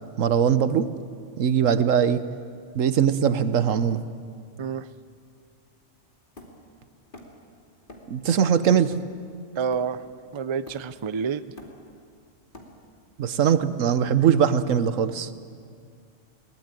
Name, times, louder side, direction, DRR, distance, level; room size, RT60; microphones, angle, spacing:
voice 1, 0.2-0.9 1.4-2.2 2.7-4.0 8.1-8.9 13.2-15.3, right 8 dB, 90° right, 13 dB, 1.3 m, -21 dB
Hammer, 6.4-7.5 7.9-8.2 8.6-10.2 10.7-11.1 11.4-13.1, left 1 dB, 40° left, 2.9 m, -47 dB
voice 2, 9.6-10.0 10.3-11.5, right 6 dB, 35° right, 14 dB, 0.4 m, -28 dB
22.0 x 19.5 x 9.1 m, 2.2 s
omnidirectional pair, 1.3 m